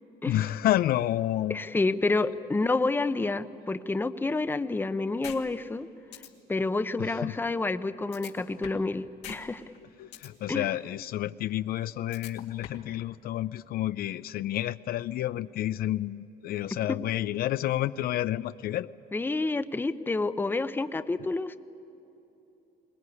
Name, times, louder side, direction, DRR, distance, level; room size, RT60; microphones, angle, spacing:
voice 1, 0.3-1.6 7.0-7.4 10.0-18.9, left 13 dB, 65° left, 14 dB, 0.5 m, -30 dB
voice 2, 1.5-5.9 6.5-9.6 10.5-10.6 16.9-17.0 19.1-21.6, left 3 dB, 10° left, 12 dB, 0.7 m, -29 dB
sound 1, 5.2-5.4 5.7-5.8 6.1-6.3 8.1-8.9 9.2-9.4 9.7-10.3 12.1-12.9, left 11 dB, 85° left, 2.1 m, -41 dB
22.5 x 19.5 x 9.6 m, 2.9 s
cardioid pair, 110°, 17 cm